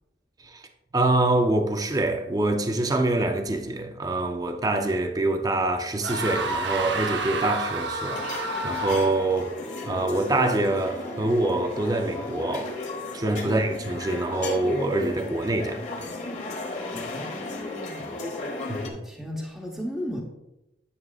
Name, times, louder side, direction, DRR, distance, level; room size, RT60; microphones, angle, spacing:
voice 1, 0.9-8.2 8.6-9.5 9.8-12.7 13.1-16.1 18.7-19.0, right 2 dB, 20° right, 0.5 m, -25 dB
sound 1, 6.0-9.4, right 2 dB, 85° right, 0.8 m, -29 dB
sound 2, 8.1-18.9, left 2 dB, 40° left, 1.2 m, -34 dB
voice 2, 13.4-13.7 16.9-18.3 18.8-20.3, equal, ahead, 0.9 m, -36 dB
9.7 x 6.2 x 2.4 m
head